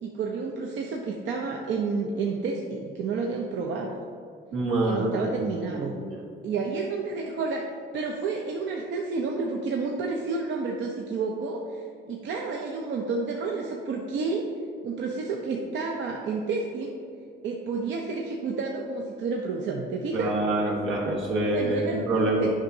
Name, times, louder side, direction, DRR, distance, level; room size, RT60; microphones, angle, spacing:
voice 1, 0.0-4.0 4.9-6.0 6.4-7.7 7.9-14.5 14.8-16.9 17.4-20.3 21.5-22.5, right 4 dB, 70° right, 0 dB, 0.6 m, -30 dB
voice 2, 4.5-5.3 5.5-6.2 20.1-22.5, right 2 dB, 85° right, -3 dB, 1.4 m, -26 dB
8.7 x 5.4 x 2.7 m, 2.3 s
cardioid pair, 90°, 20 cm